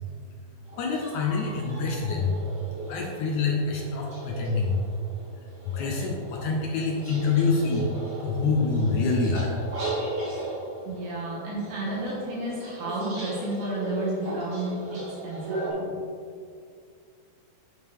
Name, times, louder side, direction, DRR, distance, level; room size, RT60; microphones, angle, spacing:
sound 1, 0.6-15.7, right 2 dB, 45° right, 1.6 m, -37 dB
voice 1, 0.8-2.4 2.9-4.8 5.6-9.5, left 4 dB, 80° left, 0 dB, 1.7 m, -26 dB
voice 2, 10.9-14.7 15.2-15.9, right 2 dB, 65° right, -5 dB, 3.6 m, -32 dB
9.6 x 6.4 x 3.6 m, 2.2 s
omnidirectional pair, 4.4 m